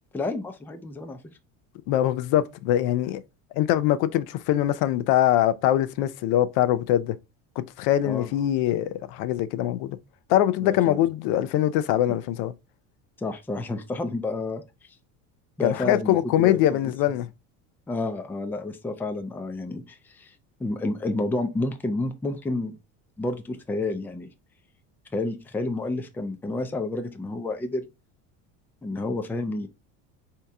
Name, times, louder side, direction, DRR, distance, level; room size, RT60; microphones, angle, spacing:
voice 1, 0.1-1.2 8.0-8.3 10.6-11.0 13.2-14.6 15.6-16.8 17.9-20.3 20.6-22.8 23.2-24.3 25.1-27.9 28.8-29.7, left 2 dB, 5° left, 0.4 m, -30 dB
voice 2, 1.9-3.2 3.6-7.2 7.6-10.0 10.3-12.5 15.6-17.3, left 12 dB, 70° left, 0.5 m, -23 dB
3.6 x 2.8 x 3.3 m
supercardioid pair, 110°, 39 cm